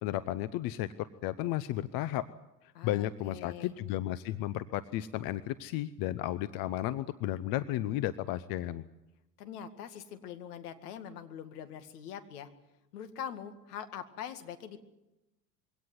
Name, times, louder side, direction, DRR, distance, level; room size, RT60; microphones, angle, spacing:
voice 1, 0.0-2.3 2.6-8.8, left 14 dB, 45° left, 15 dB, 0.9 m, -33 dB
voice 2, 2.7-3.7 9.4-12.5 12.9-14.8, left 9 dB, 65° left, 9 dB, 2.2 m, -43 dB
22.5 x 17.0 x 9.5 m, 0.96 s
hypercardioid pair, 85°, 49 cm